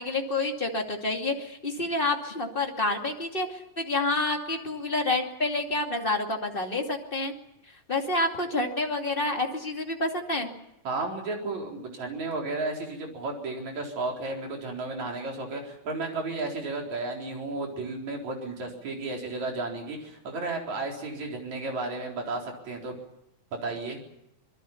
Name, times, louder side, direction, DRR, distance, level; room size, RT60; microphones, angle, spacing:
voice 1, 0.0-7.3 7.9-10.5, left 2 dB, 20° left, 2 dB, 2.2 m, -28 dB
voice 2, 10.9-22.9 23.6-24.0, right 3 dB, 60° right, 1 dB, 5.4 m, -33 dB
26.0 x 21.0 x 7.1 m, 0.83 s
omnidirectional pair, 3.6 m